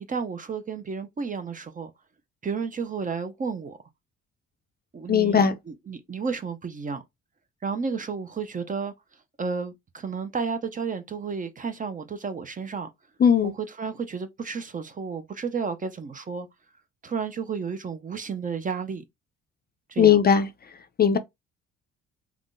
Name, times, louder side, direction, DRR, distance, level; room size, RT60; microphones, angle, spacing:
voice 1, 0.1-1.9 2.4-3.8 4.9-7.0 7.6-8.9 9.4-12.9 13.4-16.5 17.0-19.0 19.9-20.2, right 5 dB, 25° right, 0.4 m, -32 dB
voice 2, 5.1-5.6 13.2-13.5 20.0-20.5 21.0-21.2, left 7 dB, 35° left, 0.4 m, -18 dB
3.5 x 2.3 x 2.5 m
cardioid pair, 90°, 30 cm